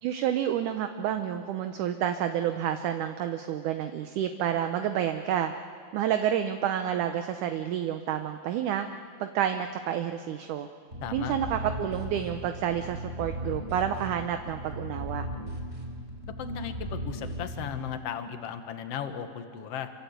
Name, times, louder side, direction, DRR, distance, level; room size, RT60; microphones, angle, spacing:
voice 1, 0.0-5.5 5.9-8.9 9.2-10.7 11.1-15.3, right 10 dB, 75° right, 7 dB, 2.0 m, -29 dB
sound 1, 10.9-18.0, equal, 20° right, 4.7 m, -37 dB
voice 2, 11.0-11.4 16.4-19.9, left 8 dB, 60° left, 8 dB, 1.7 m, -36 dB
26.5 x 25.0 x 8.1 m, 2.2 s
omnidirectional pair, 4.3 m